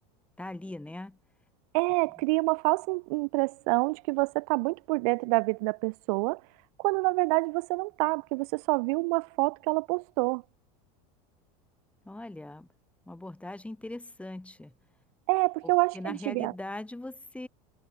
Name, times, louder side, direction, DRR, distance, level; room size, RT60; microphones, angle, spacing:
voice 1, 0.4-1.2 12.0-12.7 13.1-14.7 15.6-17.5, left 1 dB, 5° left, 3.0 m, -40 dB
voice 2, 1.7-6.4 6.8-10.4 15.3-16.5, right 29 dB, 65° right, 1.2 m, -27 dB
supercardioid pair, 105°, 20 cm